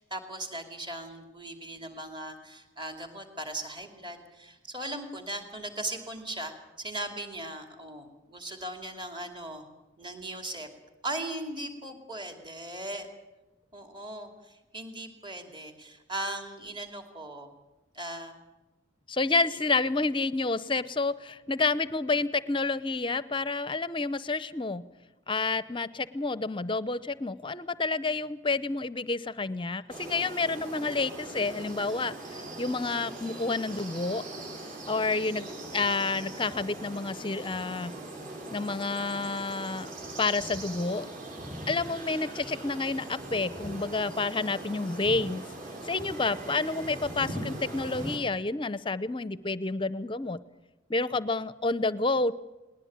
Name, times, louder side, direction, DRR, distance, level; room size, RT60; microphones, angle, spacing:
voice 1, 0.0-9.7 10.0-10.7 11.0-13.1 13.7-17.5 17.9-18.4 19.5-19.6, right 1 dB, 20° right, 6 dB, 2.7 m, -38 dB
voice 2, 19.1-24.8 25.3-34.2 34.9-37.9 38.5-39.9 40.2-41.1 41.7-45.4 45.8-50.4 50.9-52.3, left 3 dB, 25° left, 16 dB, 0.7 m, -29 dB
sound 1, 29.9-48.2, right 1 dB, 40° right, 7.1 m, -40 dB
19.5 x 19.5 x 8.9 m, 1.1 s
head